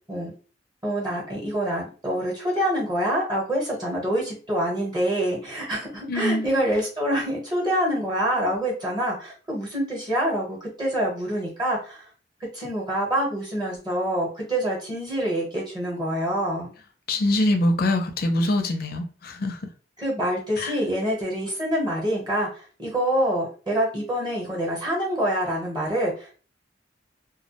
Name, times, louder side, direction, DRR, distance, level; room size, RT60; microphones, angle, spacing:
voice 1, 0.8-12.0 12.5-16.7 20.0-26.3, equal, 25° right, 0.9 m, -26 dB
voice 2, 6.0-6.5 17.1-19.7 20.6-20.8, left 1 dB, 55° left, 0.5 m, -24 dB
2.3 x 2.1 x 2.8 m
head